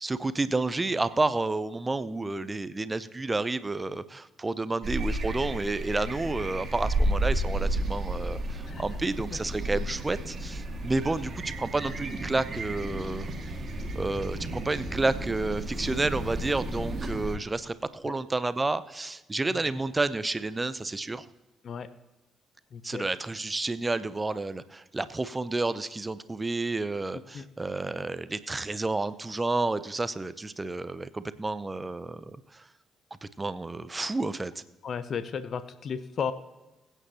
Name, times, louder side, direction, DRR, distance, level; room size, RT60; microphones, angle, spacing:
voice 1, 0.0-13.3 13.9-21.3 22.8-32.6 33.2-34.5, right 2 dB, 20° right, 15 dB, 0.7 m, -30 dB
sound 1, 4.8-17.4, right 1 dB, 40° right, 2.0 m, -32 dB
voice 2, 22.7-23.0 27.3-27.5 34.8-36.3, left 6 dB, 50° left, 14 dB, 0.7 m, -34 dB
21.5 x 9.1 x 2.9 m, 1.1 s
figure-of-eight pair, 40°, 0 cm